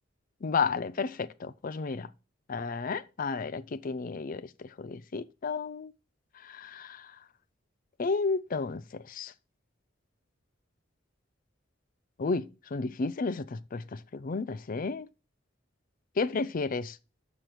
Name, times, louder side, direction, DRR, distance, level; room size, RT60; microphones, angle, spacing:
voice 1, 0.4-2.1 2.5-5.9 6.4-7.1 8.0-9.3 12.2-15.1 16.2-17.0, left 4 dB, 45° left, 0.5 m, -32 dB
6.1 x 5.9 x 6.6 m
head